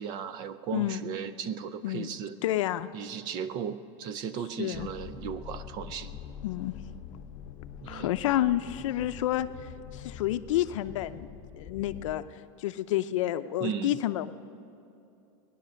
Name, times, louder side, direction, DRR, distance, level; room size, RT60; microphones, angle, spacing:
voice 1, 0.0-2.4 2.9-6.2 7.8-8.1 13.6-14.0, right 7 dB, 25° right, 14 dB, 0.4 m, -36 dB
voice 2, 0.7-1.1 1.8-2.1 2.4-2.9 4.6-4.9 6.4-6.7 7.9-9.5 9.9-11.3 11.6-12.2 12.6-14.3, left 13 dB, 75° left, 12 dB, 0.6 m, -29 dB
sound 1, 4.7-12.2, left 8 dB, 30° left, 0.8 m, -45 dB
18.5 x 11.0 x 6.4 m, 2.8 s
supercardioid pair, 180°, 16 cm